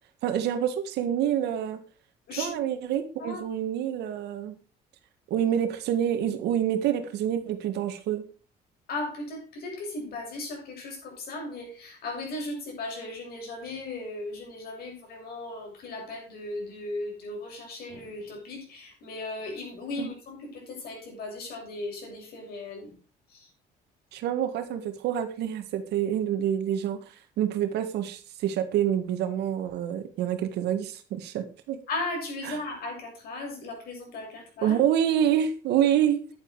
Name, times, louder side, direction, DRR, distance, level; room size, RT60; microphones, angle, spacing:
voice 1, 0.2-1.8 2.4-4.6 5.3-8.3 20.0-20.1 24.1-27.0 27.4-31.8 32.5-32.6 34.6-36.2, right 10 dB, 80° right, 1.8 m, -27 dB
voice 2, 8.9-23.0 23.3-23.5 31.9-34.8, left 2 dB, 65° left, 7.4 m, -37 dB
10.5 x 9.4 x 4.8 m
cardioid pair, 110°, 17 cm